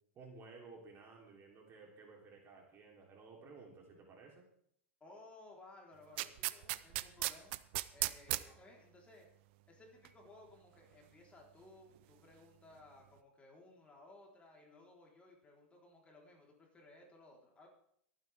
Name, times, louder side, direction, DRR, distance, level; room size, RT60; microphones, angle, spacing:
voice 1, 0.2-4.4 8.4-8.6, right 4 dB, 35° right, 0 dB, 3.5 m, -56 dB
voice 2, 5.0-7.6 7.9-9.3 9.7-17.7, left 2 dB, 15° left, -1 dB, 3.9 m, -59 dB
sound 1, 6.2-8.4 10.0-10.1, right 19 dB, 60° right, 0.6 m, -35 dB
23.0 x 9.3 x 3.6 m, 0.68 s
hypercardioid pair, 115°, 7 cm